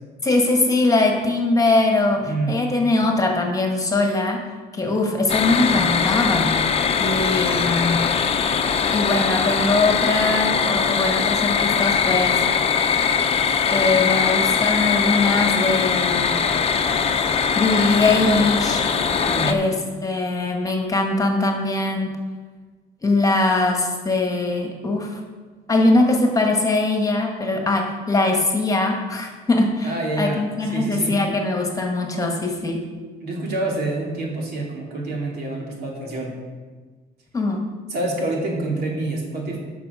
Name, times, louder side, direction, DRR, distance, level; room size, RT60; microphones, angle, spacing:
voice 1, 0.2-4.4 4.7-8.0 8.9-12.4 13.7-16.5 17.5-18.8 19.5-19.7 20.0-22.1 23.0-25.2 25.7-32.8 37.3-37.7, left 2 dB, 20° left, 2 dB, 1.6 m, -21 dB
sound 1, 5.3-19.5, left 6 dB, 35° left, 0.7 m, -21 dB
voice 2, 19.2-19.6 29.8-30.4 30.7-31.2 33.2-36.4 37.9-39.6, right 2 dB, 70° right, -1 dB, 2.6 m, -27 dB
13.0 x 6.0 x 4.9 m, 1.4 s
cardioid pair, 110°, 17 cm